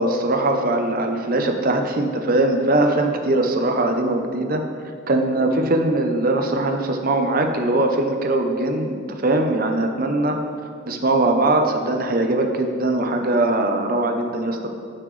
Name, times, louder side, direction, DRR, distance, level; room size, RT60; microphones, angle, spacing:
voice 1, 0.0-4.6 5.1-10.4 10.9-14.7, right 2 dB, 45° right, 4 dB, 0.8 m, -21 dB
14.5 x 5.8 x 3.3 m, 2.2 s
head